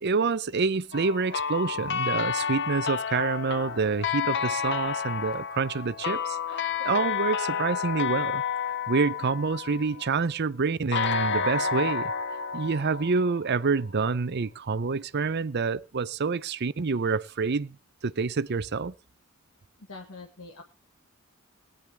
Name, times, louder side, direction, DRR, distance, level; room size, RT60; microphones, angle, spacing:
voice 1, 0.0-8.4 8.9-12.1 12.5-17.7 18.0-18.9, right 4 dB, 50° right, 0.6 m, -27 dB
sound 1, 0.9-10.1 10.9-13.8, left 6 dB, 55° left, 0.8 m, -30 dB
voice 2, 19.8-20.6, left 3 dB, 75° left, 1.9 m, -45 dB
19.0 x 10.0 x 3.4 m
head